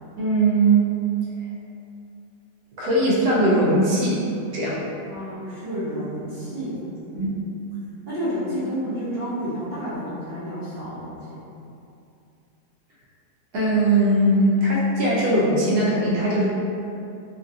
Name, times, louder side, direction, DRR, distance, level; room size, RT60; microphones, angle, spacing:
voice 1, 0.2-0.9 2.8-4.2 4.5-4.8 7.1-7.3 13.5-16.5, right 1 dB, 75° right, -5 dB, 1.1 m, -20 dB
voice 2, 5.1-7.4 8.1-11.4, equal, 50° right, -13 dB, 0.8 m, -30 dB
3.1 x 2.3 x 2.6 m, 2.6 s
omnidirectional pair, 1.8 m